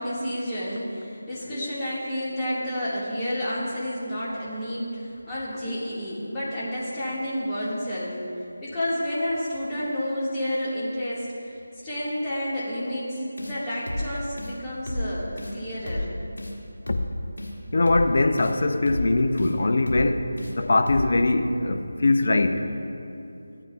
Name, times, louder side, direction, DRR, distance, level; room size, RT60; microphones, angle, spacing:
voice 1, 0.0-8.2 8.6-16.1, equal, 15° left, -10 dB, 1.9 m, -30 dB
sound 1, 13.4-13.6 13.9-14.1 14.4-14.5 14.9-15.1 15.4-15.5 15.9-16.1 16.4-16.5 16.9-17.1 17.4-17.5 17.9-18.1 18.4-18.5 18.9-19.1 19.4-19.5 19.9-20.1 20.4-20.5 20.9-21.1, left 1 dB, 70° left, 1.9 m, -31 dB
voice 2, 17.7-20.3 20.6-22.7, left 2 dB, 50° left, 7 dB, 0.6 m, -22 dB
15.0 x 8.9 x 2.4 m, 2.7 s
figure-of-eight pair, 160°, 0 cm